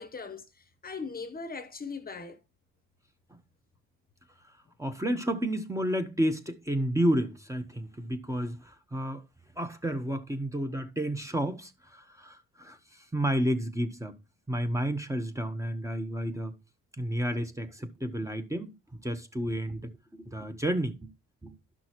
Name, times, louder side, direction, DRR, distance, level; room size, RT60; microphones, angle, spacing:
voice 1, 0.0-2.4, left 4 dB, 30° left, 0.9 m, -40 dB
voice 2, 4.8-9.2 9.6-14.2 14.5-16.6 17.0-21.1 21.4-21.6, right 1 dB, 10° right, 1.0 m, -31 dB
11.5 x 6.1 x 3.0 m
cardioid pair, 90°, 30 cm